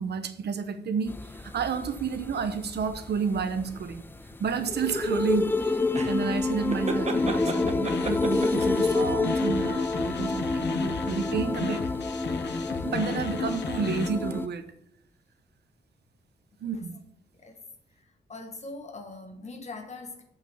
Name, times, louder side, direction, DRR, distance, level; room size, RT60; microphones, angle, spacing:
voice 1, 0.0-4.0 4.4-11.8 12.8-14.7 16.6-17.0, right 6 dB, 65° right, 0.9 m, -31 dB
sound 1, 1.1-14.5, left 3 dB, 10° left, 0.3 m, -28 dB
sound 2, 5.9-8.8, right 4 dB, 40° right, 1.0 m, -34 dB
sound 3, 7.2-14.1, left 6 dB, 75° left, 0.9 m, -35 dB
voice 2, 18.3-20.2, left 3 dB, 40° left, 1.4 m, -41 dB
7.9 x 5.9 x 6.7 m
wide cardioid pair, 155°, 18 cm